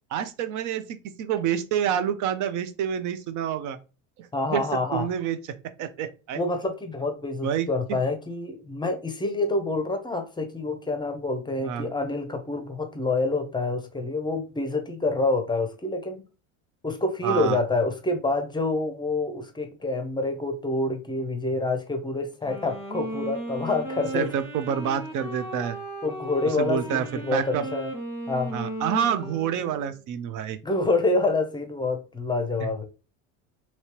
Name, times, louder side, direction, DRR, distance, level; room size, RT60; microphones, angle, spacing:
voice 1, 0.1-3.8 4.2-5.4 5.8-6.4 7.4-8.0 11.6-11.9 17.2-17.6 24.1-25.8 26.4-27.7 28.5-30.6 32.6-32.8, right 9 dB, 50° right, 0.6 m, -28 dB
voice 2, 4.3-5.1 6.3-16.2 16.8-24.3 26.0-27.9 28.3-28.5 30.6-32.8, left 2 dB, 10° left, 0.6 m, -27 dB
Wind instrument woodwind instrument, 22.3-30.0, right 1 dB, 5° right, 1.3 m, -36 dB
3.0 x 2.9 x 2.9 m
supercardioid pair, 100°, 39 cm